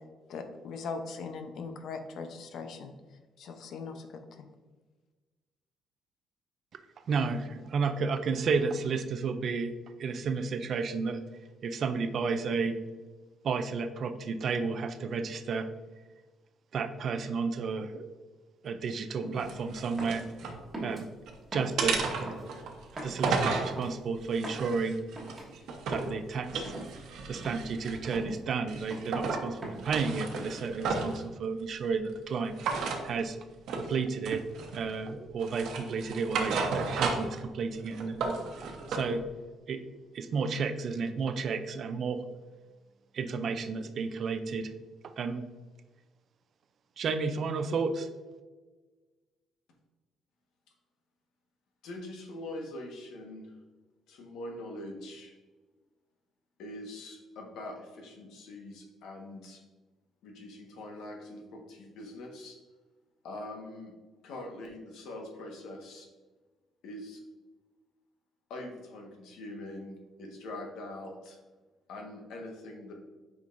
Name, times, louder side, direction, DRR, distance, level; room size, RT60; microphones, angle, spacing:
voice 1, 0.3-2.9 3.4-4.5, left 4 dB, 60° left, 7 dB, 0.7 m, -40 dB
voice 2, 7.1-9.7 10.0-11.2 11.6-12.8 13.4-15.7 16.7-18.1 18.6-20.2 20.8-21.1 21.5-22.4 23.0-25.0 25.9-26.7 27.3-32.6 33.0-33.4 33.7-34.4 34.7-39.2 39.7-39.8 40.1-42.2 43.1-44.7 45.0-45.4 47.0-48.1, right 5 dB, 45° right, 9 dB, 0.4 m, -32 dB
sound 1, 19.2-19.5 20.0-20.3 20.7-21.0 21.5-21.8 22.2-22.5 23.0-23.2 23.7-23.9 24.4-24.7 25.2-25.5 25.9-26.1 26.6-26.9 27.4-27.7 28.1-28.4 28.9-29.2 29.6-29.9 30.3-30.7, right 1 dB, 10° right, 1.4 m, -41 dB
sound 2, 19.4-20.6 21.0-21.4 21.8-23.7 24.3-26.1 26.4-28.3 28.7-29.5 29.8-31.2 32.6-33.0 33.7-33.9 34.2-35.0 35.4-37.4 37.7-39.1, right 4 dB, 70° right, 1.0 m, -33 dB
voice 3, 51.8-53.6 54.1-55.3 56.6-59.6 60.2-62.6 63.2-63.9 64.2-66.1 66.8-67.2 68.5-71.4 71.9-72.9, left 1 dB, 80° left, 2 dB, 1.4 m, -43 dB
8.3 x 5.1 x 2.6 m, 1.3 s
cardioid pair, 160°, 0 cm